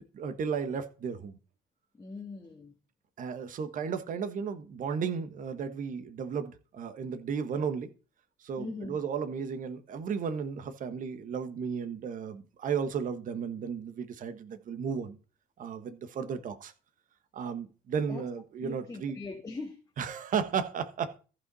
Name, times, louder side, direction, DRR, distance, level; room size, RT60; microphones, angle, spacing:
voice 1, 0.1-1.4 3.2-7.9 8.4-15.2 15.6-16.7 17.3-19.2 20.0-21.2, right 6 dB, 50° right, 1.3 m, -34 dB
voice 2, 2.0-2.7 8.6-9.0 18.1-18.2 18.6-19.8, left 3 dB, 20° left, 1.8 m, -41 dB
14.5 x 5.5 x 4.1 m
cardioid pair, 110°, 17 cm